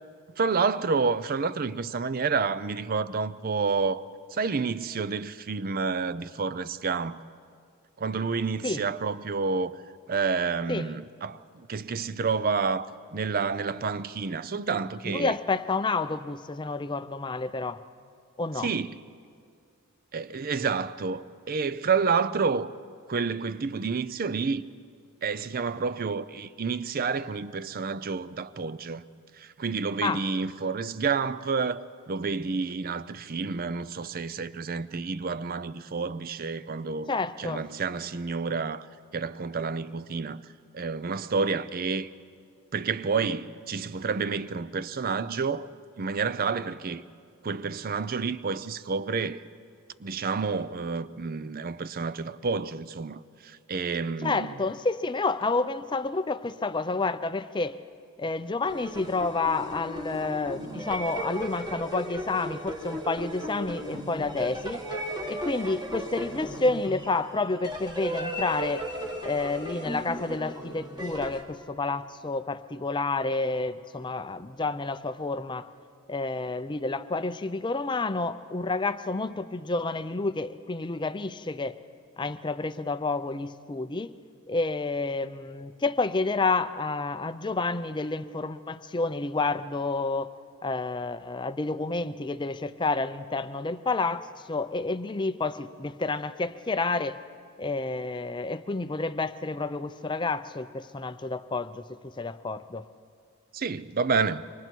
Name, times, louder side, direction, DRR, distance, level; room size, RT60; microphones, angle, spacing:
voice 1, 0.4-4.0 4.3-7.2 8.0-9.7 10.1-15.4 18.6-18.9 20.1-22.7 23.1-24.6 25.2-29.0 29.3-31.8 32.1-37.1 37.4-38.9 39.1-40.4 40.7-42.1 42.7-45.7 46.0-47.0 47.4-49.4 50.0-54.6 103.5-104.5, right 5 dB, 40° right, 0.5 m, -29 dB
voice 2, 15.0-17.8 18.4-18.7 30.0-30.2 37.1-37.6 54.2-57.8 58.2-64.8 65.3-68.9 69.2-75.7 76.1-81.8 82.2-84.1 84.5-90.3 90.6-97.2 97.6-102.8, left 3 dB, 20° left, 0.5 m, -29 dB
sound 1, 58.6-71.4, equal, 20° right, 2.0 m, -36 dB
28.0 x 24.5 x 4.5 m
head